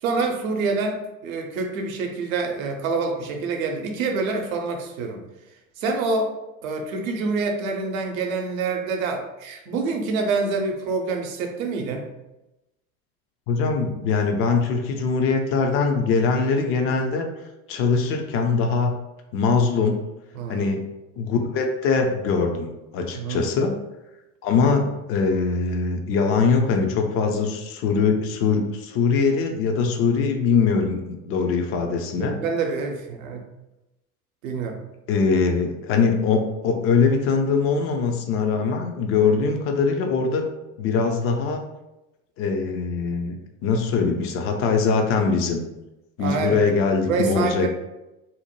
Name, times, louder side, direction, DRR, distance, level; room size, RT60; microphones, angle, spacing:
voice 1, 0.0-5.2 5.8-6.3 6.6-12.1 20.3-20.7 23.1-23.4 32.2-33.4 34.4-34.8 46.2-46.6 47.1-47.7, right 4 dB, 70° right, 3 dB, 0.7 m, -26 dB
voice 2, 13.5-17.3 17.7-18.9 19.3-20.0 20.5-20.8 21.2-23.7 24.4-32.4 35.1-40.4 40.8-41.6 42.4-43.4 43.6-45.6 46.2-47.7, left 5 dB, 35° left, 4 dB, 0.4 m, -22 dB
2.7 x 2.1 x 2.9 m, 0.96 s
figure-of-eight pair, 75°, 43 cm